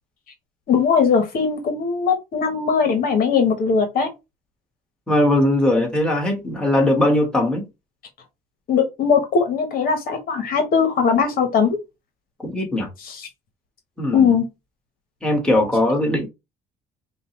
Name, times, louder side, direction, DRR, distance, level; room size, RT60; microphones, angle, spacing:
voice 1, 0.7-4.1 8.7-11.8 13.1-13.2 14.1-14.4, left 6 dB, 60° left, 1.2 m, -19 dB
voice 2, 5.1-7.6 12.4-12.9 14.0-14.3 15.2-16.3, left 1 dB, 5° left, 1.7 m, -19 dB
5.1 x 2.4 x 3.1 m
cardioid pair, 110°, 17 cm